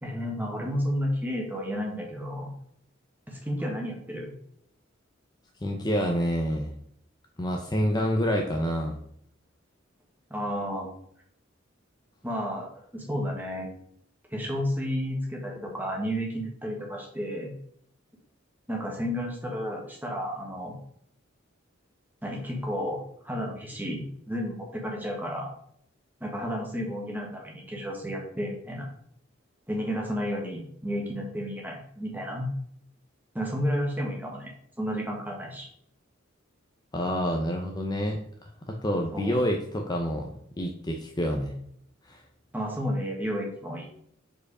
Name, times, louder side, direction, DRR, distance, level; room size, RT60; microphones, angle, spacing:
voice 1, 0.0-2.5 3.3-4.3 10.3-10.9 12.2-13.7 14.3-17.5 18.7-20.8 22.2-25.5 26.2-28.9 29.7-32.5 33.3-34.5 34.8-35.7 39.1-39.4 42.5-43.9, equal, 10° right, -1 dB, 1.5 m, -32 dB
voice 2, 5.6-6.7 7.4-9.0 36.9-41.5 42.0-42.2, equal, 20° left, 2 dB, 0.6 m, -28 dB
5.0 x 4.7 x 4.8 m, 0.68 s
head